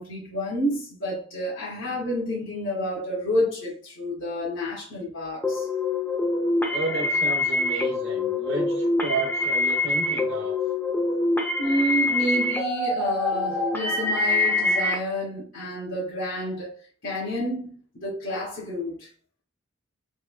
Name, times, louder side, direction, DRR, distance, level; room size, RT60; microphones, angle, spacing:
voice 1, 0.0-5.7 11.6-16.8 17.0-19.1, equal, 75° left, 1.9 m, -29 dB
sound 1, 5.4-14.9, left 2 dB, 10° left, 0.5 m, -25 dB
voice 2, 6.7-10.6, right 3 dB, 65° right, 0.9 m, -32 dB
4.2 x 3.5 x 2.2 m
head